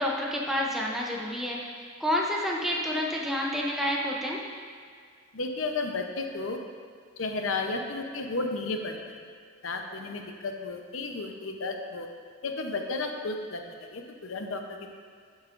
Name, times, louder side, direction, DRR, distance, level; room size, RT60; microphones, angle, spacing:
voice 1, 0.0-4.4, equal, ahead, -3 dB, 0.6 m, -29 dB
voice 2, 5.3-6.6 7.2-9.2 9.6-12.1 12.4-14.6, left 3 dB, 70° left, 4 dB, 0.7 m, -33 dB
9.7 x 7.1 x 2.5 m, 2.1 s
head